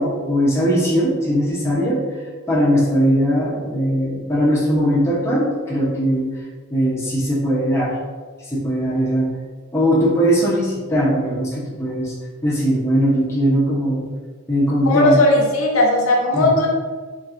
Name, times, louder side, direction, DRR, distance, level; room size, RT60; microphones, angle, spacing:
voice 1, 0.0-2.0 2.5-6.3 6.7-8.0 8.4-9.3 9.7-12.1 12.4-14.0 14.5-15.2 16.3-16.5, equal, 10° left, -7 dB, 0.7 m, -19 dB
voice 2, 14.8-16.7, left 1 dB, 65° left, -2 dB, 0.7 m, -16 dB
4.3 x 3.2 x 2.5 m, 1.4 s
head